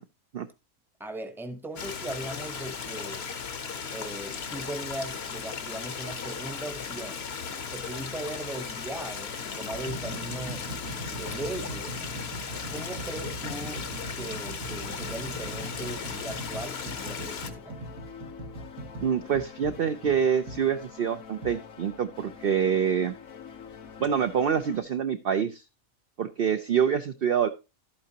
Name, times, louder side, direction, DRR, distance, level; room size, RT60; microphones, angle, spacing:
voice 1, 1.0-3.3 3.9-7.3 7.7-10.7 11.0-12.0 12.7-13.9 14.1-17.9, right 1 dB, ahead, 0.8 m, -38 dB
Stream, 1.8-17.5, left 6 dB, 50° left, 1.1 m, -36 dB
sound 1, 7.4-7.7 8.5-8.7 9.3-20.6 21.4-21.6, right 2 dB, 75° right, 1.7 m, -40 dB
sound 2, 15.4-24.8, left 7 dB, 80° left, 1.5 m, -46 dB
voice 2, 19.0-23.1 24.0-25.6 26.2-27.5, right 8 dB, 55° right, 0.7 m, -26 dB
12.0 x 8.7 x 2.8 m
omnidirectional pair, 1.4 m